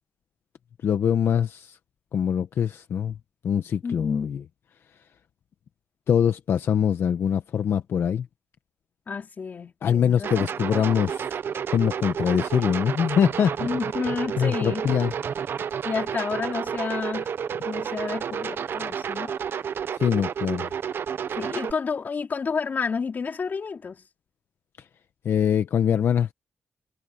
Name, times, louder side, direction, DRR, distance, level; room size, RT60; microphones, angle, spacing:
voice 1, 0.8-1.8 2.1-3.2 3.4-4.4 6.1-8.3 9.8-11.3 11.7-13.7 14.4-15.1 19.9-20.7 24.8-24.9 25.2-26.3, left 8 dB, 75° left, 1.0 m, -23 dB
voice 2, 3.8-4.3 9.1-10.3 13.6-14.9 15.8-17.3 17.6-19.3 21.4-24.0, left 5 dB, 45° left, 3.8 m, -30 dB
sound 1, 10.2-21.7, right 7 dB, 65° right, 0.9 m, -30 dB
wide cardioid pair, 115°, 4 cm